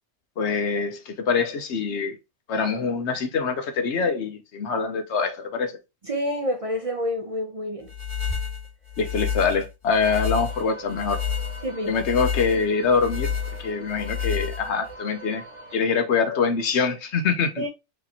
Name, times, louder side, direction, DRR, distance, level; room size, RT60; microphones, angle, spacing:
voice 1, 0.4-2.2 2.5-5.8 9.0-11.2 11.9-13.3 13.6-15.4 15.7-17.7, left 5 dB, 75° left, 1.1 m, -24 dB
voice 2, 6.0-7.9 11.6-12.0 17.6-17.7, equal, 35° right, 0.6 m, -28 dB
sound 1, 7.9-14.9, left 8 dB, 40° left, 2.1 m, -30 dB
sound 2, 10.0-15.8, right 2 dB, 85° right, 2.2 m, -42 dB
4.9 x 3.0 x 2.7 m
omnidirectional pair, 1.2 m